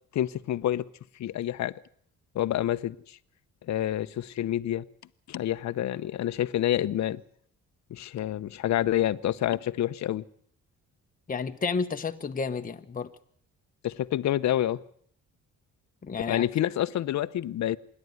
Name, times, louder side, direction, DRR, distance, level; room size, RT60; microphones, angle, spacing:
voice 1, 0.1-0.9 1.2-1.7 2.3-3.2 3.7-4.8 5.3-7.2 7.9-10.2 13.8-14.8 16.3-17.8, left 12 dB, 65° left, 0.9 m, -28 dB
voice 2, 11.3-13.1 16.0-16.5, left 5 dB, 30° left, 1.1 m, -31 dB
25.5 x 11.0 x 9.5 m
cardioid pair, 90°, 30 cm